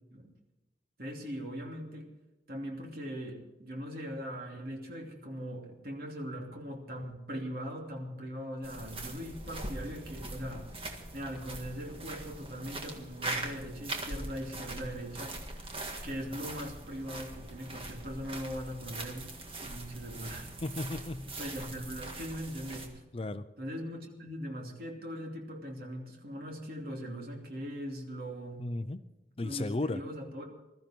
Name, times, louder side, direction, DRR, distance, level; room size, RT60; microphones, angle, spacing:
voice 1, 1.0-2.1 2.5-10.7 11.1-15.6 16.0-19.3 19.6-20.5 21.4-23.0 23.6-28.7 29.4-30.4, equal, 55° right, 1 dB, 3.0 m, -40 dB
sound 1, 8.6-22.9, right 2 dB, 30° right, 1.8 m, -42 dB
voice 2, 20.6-21.3 23.1-23.5 28.6-29.0 29.4-30.0, left 2 dB, 30° left, 12 dB, 0.5 m, -34 dB
21.0 x 13.5 x 4.5 m, 0.98 s
head